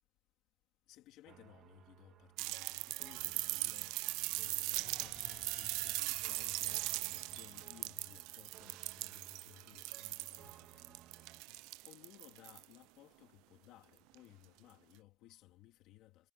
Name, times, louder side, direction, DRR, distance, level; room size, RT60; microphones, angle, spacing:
voice 1, 0.9-4.0 4.3-16.3, left 15 dB, 65° left, 2.1 m, -60 dB
sound 1, 1.3-11.4, right 12 dB, 50° right, 1.7 m, -61 dB
sound 2, 2.4-12.8 14.1-14.2, right 22 dB, 90° right, 0.4 m, -40 dB
sound 3, 4.1-12.2, left 9 dB, 30° left, 1.3 m, -63 dB
cardioid pair, 175°, 0 cm